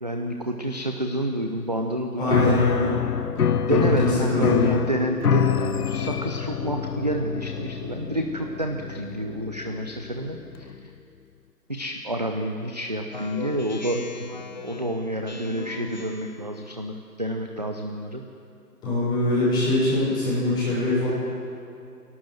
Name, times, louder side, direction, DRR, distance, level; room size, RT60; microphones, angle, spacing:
voice 1, 0.0-2.6 3.7-10.9 11.7-14.1 14.6-18.2, right 1 dB, 25° right, 4 dB, 0.6 m, -29 dB
voice 2, 2.2-2.9 3.7-3.8 4.0-4.8 18.8-21.1, left 1 dB, 10° left, -9 dB, 6.3 m, -23 dB
Piano, 2.3-10.8, left 7 dB, 65° left, 1.0 m, -26 dB
Speech synthesizer, 13.1-16.4, left 3 dB, 30° left, 0.8 m, -38 dB
29.5 x 12.0 x 7.7 m, 2.6 s
hypercardioid pair, 165°, 49 cm